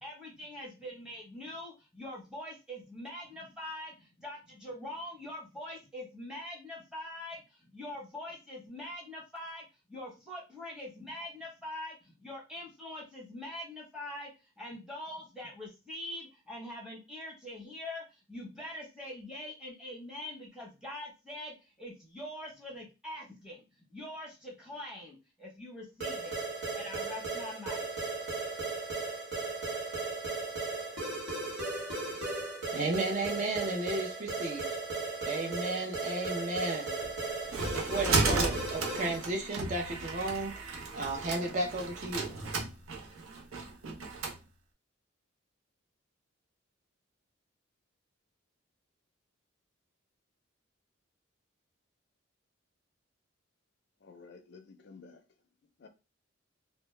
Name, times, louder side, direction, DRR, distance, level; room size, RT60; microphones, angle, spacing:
voice 1, 0.0-26.4 26.7-27.9, left 1 dB, 5° right, 0.8 m, -43 dB
sound 1, 26.0-39.3, right 3 dB, 65° right, 1.0 m, -36 dB
voice 2, 32.7-34.7 35.2-37.0 37.7-42.3, right 2 dB, 35° right, 0.4 m, -34 dB
sound 2, 37.0-44.4, right 3 dB, 80° right, 0.6 m, -34 dB
voice 3, 54.0-55.2 55.8-55.9, left 4 dB, 55° left, 0.4 m, -52 dB
2.1 x 2.0 x 3.1 m
head